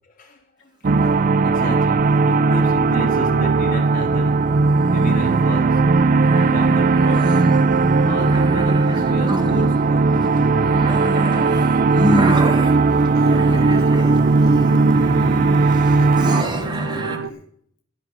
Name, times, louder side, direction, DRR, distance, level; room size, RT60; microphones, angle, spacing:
voice 1, 0.1-2.0 2.2-4.4 4.9-5.8 6.4-7.4 8.1-10.4, left 2 dB, 45° left, -2 dB, 3.4 m, -33 dB
sound 1, 0.8-16.4, right 3 dB, 45° right, 0.4 m, -17 dB
sound 2, 1.5-17.2, equal, 20° right, 1.3 m, -27 dB
sound 3, 2.8-11.4 11.7-17.3, right 5 dB, 80° right, 0.7 m, -35 dB
voice 2, 13.1-15.0 15.9-17.4, left 2 dB, 85° left, 2 dB, 1.4 m, -38 dB
13.5 x 5.9 x 8.8 m, 0.66 s
head